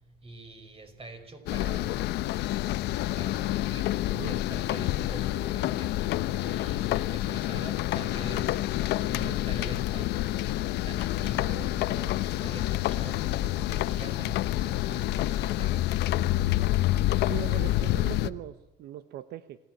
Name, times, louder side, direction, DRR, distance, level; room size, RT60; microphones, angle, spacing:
voice 1, 0.1-2.1 3.2-10.5 10.8-15.9, right 2 dB, 35° right, 6 dB, 5.7 m, -44 dB
sound 1, 1.5-18.3, left 15 dB, 80° left, 0.9 m, -28 dB
voice 2, 17.3-19.6, right 12 dB, 75° right, 13 dB, 1.0 m, -39 dB
27.0 x 17.0 x 9.2 m, 0.89 s
cardioid pair, 110°, 17 cm